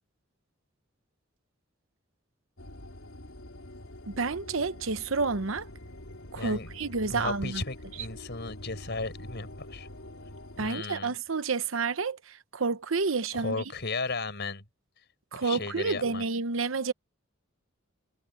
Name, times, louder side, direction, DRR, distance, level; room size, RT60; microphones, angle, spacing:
sound 1, 2.6-10.7, left 1 dB, 80° left, 4.0 m, -45 dB
voice 1, 4.1-5.7 6.3-7.6 10.6-13.6 15.3-16.9, right 4 dB, 75° right, 0.9 m, -30 dB
voice 2, 6.3-6.7 7.1-9.9 10.6-11.2 13.3-14.6 15.3-16.2, left 3 dB, 55° left, 5.8 m, -35 dB
head